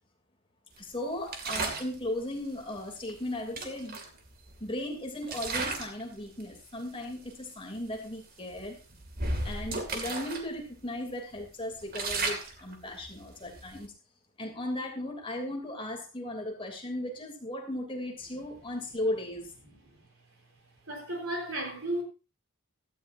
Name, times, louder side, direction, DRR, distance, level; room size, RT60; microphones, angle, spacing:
voice 1, 0.8-4.0 4.6-8.8 9.4-13.9 14.4-19.5, left 1 dB, 25° left, 2.9 m, -36 dB
sound 1, 1.3-1.9 3.1-3.2 3.6-4.8 5.2-6.0 6.4-6.7 7.3-7.4 7.8-8.0 8.5-10.4 10.8-10.9 11.3-13.9, right 3 dB, 40° right, 2.3 m, -35 dB
voice 2, 20.9-22.0, right 1 dB, 60° right, 4.2 m, -33 dB
16.5 x 13.5 x 2.7 m
head